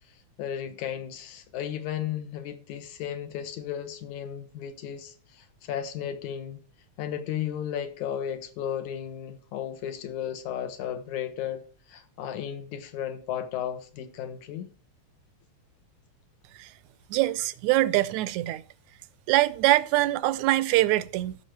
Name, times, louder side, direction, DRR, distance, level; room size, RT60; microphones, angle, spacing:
voice 1, 0.4-6.6 7.0-11.6 11.9-14.7, left 9 dB, 75° left, 2.7 m, -34 dB
voice 2, 17.1-18.6 19.3-21.4, right 16 dB, 80° right, 1.9 m, -23 dB
14.5 x 6.5 x 4.5 m
omnidirectional pair, 3.4 m